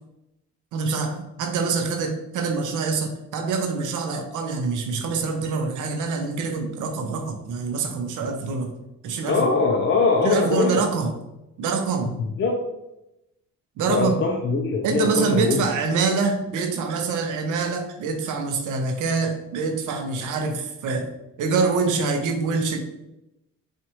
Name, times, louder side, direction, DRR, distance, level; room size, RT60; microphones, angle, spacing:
voice 1, 0.7-8.7 9.0-9.5 10.2-11.1 11.6-12.1 13.8-14.2 14.8-21.1 21.4-22.8, right 4 dB, 80° right, 4 dB, 0.7 m, -25 dB
voice 2, 9.3-10.8 12.2-12.6 13.9-15.7, left 4 dB, 40° left, 1 dB, 0.5 m, -22 dB
4.4 x 2.5 x 2.9 m, 0.90 s
cardioid pair, 90°, 30 cm